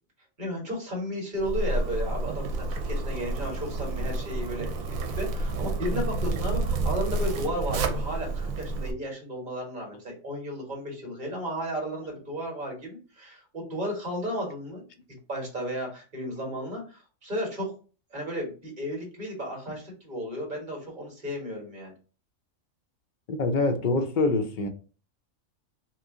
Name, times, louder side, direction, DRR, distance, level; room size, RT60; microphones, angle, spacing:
voice 1, 0.4-14.8 15.3-17.7 18.1-21.9, equal, 35° right, 1.5 m, -34 dB
Zipper (clothing), 1.4-8.9, right 2 dB, 90° right, 1.0 m, -29 dB
voice 2, 23.3-24.7, left 3 dB, 65° left, 0.4 m, -25 dB
3.0 x 2.6 x 3.6 m
omnidirectional pair, 1.4 m